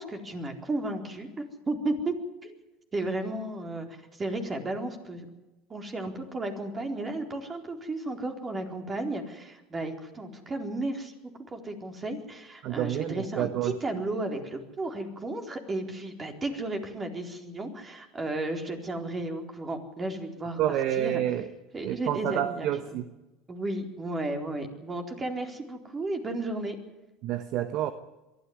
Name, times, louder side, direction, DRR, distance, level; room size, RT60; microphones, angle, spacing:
voice 1, 0.0-2.1 2.4-2.5 2.9-3.9 4.2-5.3 5.7-11.2 11.5-20.6 21.0-21.2 21.7-22.7 23.5-26.8, right 2 dB, 25° right, 4 dB, 4.2 m, -33 dB
voice 2, 12.6-13.8 20.6-21.5 21.8-23.1 27.2-27.9, right 12 dB, 55° right, 11 dB, 1.2 m, -28 dB
22.5 x 13.5 x 9.6 m, 1.1 s
hypercardioid pair, 90°, 0 cm